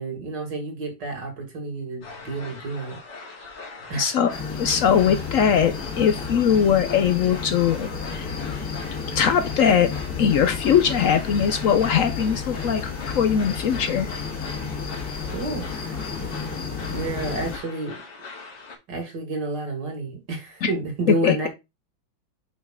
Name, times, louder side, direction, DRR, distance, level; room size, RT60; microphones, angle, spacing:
voice 1, 0.0-3.0 3.9-4.1 15.3-16.3 16.9-18.0 18.9-21.5, right 3 dB, 60° right, 2.5 m, -30 dB
sound 1, 2.0-18.8, left 3 dB, 60° left, 2.4 m, -41 dB
voice 2, 4.0-4.3 4.6-8.3 9.1-9.9 10.2-14.1 20.6-20.7 21.1-21.5, left 8 dB, 75° left, 0.7 m, -21 dB
sound 2, 4.3-17.6, left 5 dB, 45° left, 2.7 m, -32 dB
5.6 x 5.3 x 3.6 m
omnidirectional pair, 2.1 m